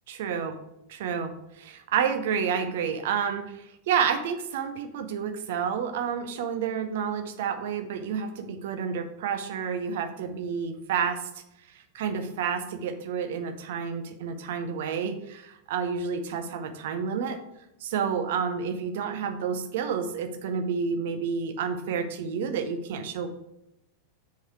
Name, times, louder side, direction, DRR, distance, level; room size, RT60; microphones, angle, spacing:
voice 1, 0.1-0.6 0.9-11.2 11.9-17.4 17.8-23.3, right 6 dB, 55° right, 8 dB, 0.8 m, -30 dB
6.6 x 5.0 x 4.7 m, 0.82 s
figure-of-eight pair, 90°, 0 cm